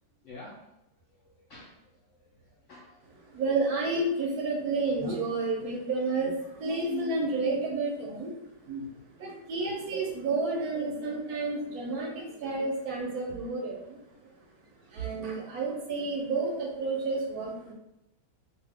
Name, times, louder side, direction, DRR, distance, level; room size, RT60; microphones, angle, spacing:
voice 1, 0.2-0.7 1.2-3.1, left 2 dB, 70° left, -5 dB, 0.7 m, -50 dB
voice 2, 3.3-8.4 8.7-8.9 9.2-14.0 14.9-17.7, right 3 dB, 70° right, -1 dB, 1.0 m, -30 dB
2.6 x 2.3 x 3.4 m, 0.86 s
omnidirectional pair, 1.9 m